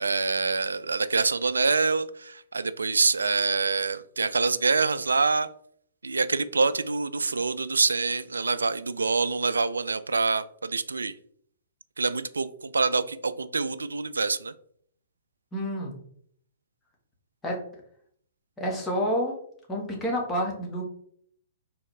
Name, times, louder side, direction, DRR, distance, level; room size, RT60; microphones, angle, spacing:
voice 1, 0.0-5.5 6.0-11.1 12.0-14.5, right 4 dB, 75° right, 14 dB, 0.3 m, -26 dB
voice 2, 15.5-15.9 17.4-17.6 18.6-19.4 19.7-20.8, equal, 10° left, -1 dB, 1.4 m, -28 dB
4.6 x 3.4 x 3.2 m, 0.63 s
figure-of-eight pair, 115°, 0 cm